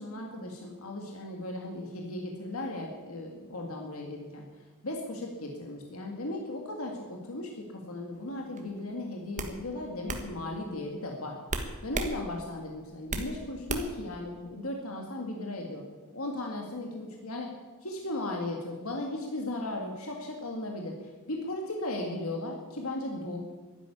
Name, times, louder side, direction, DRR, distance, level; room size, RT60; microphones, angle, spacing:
voice 1, 0.0-11.4 11.8-15.8 16.1-17.5 17.8-23.4, left 1 dB, 70° left, 1 dB, 2.1 m, -36 dB
sound 1, 8.6-8.8 9.4-9.5 10.1-10.2 11.5-12.1 12.5-13.3 13.7-14.0, right 3 dB, 35° right, 1.5 m, -33 dB
12.0 x 10.5 x 9.9 m, 1.3 s
head